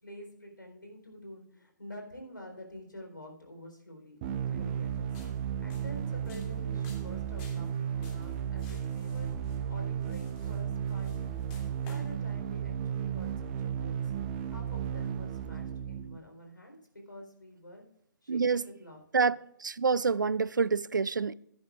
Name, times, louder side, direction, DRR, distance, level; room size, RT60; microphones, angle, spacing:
voice 1, 0.0-5.1 5.4-11.5 11.8-14.1 14.5-16.8 17.1-17.8 18.2-19.3, left 1 dB, 85° left, 4.0 m, -48 dB
sound 1, 4.2-16.2, right 8 dB, 30° right, 0.9 m, -34 dB
sound 2, 5.0-12.1, left 2 dB, 30° left, 2.9 m, -54 dB
voice 2, 18.3-18.6 19.1-19.4 19.6-21.3, right 5 dB, 75° right, 0.4 m, -27 dB
15.0 x 10.5 x 2.5 m
figure-of-eight pair, 130°, 10 cm